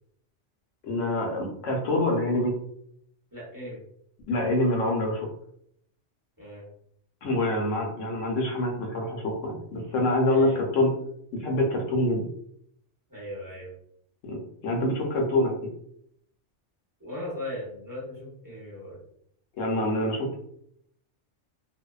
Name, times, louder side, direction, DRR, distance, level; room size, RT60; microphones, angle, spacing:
voice 1, 0.8-2.5 4.3-5.3 7.2-10.9 11.3-12.3 14.2-15.7 19.6-20.4, left 1 dB, 80° left, 0 dB, 1.0 m, -26 dB
voice 2, 3.3-3.8 6.4-6.6 10.3-10.6 13.1-13.7 17.0-19.0, left 1 dB, 20° right, -6 dB, 0.6 m, -38 dB
2.6 x 2.1 x 2.3 m, 0.70 s
omnidirectional pair, 1.3 m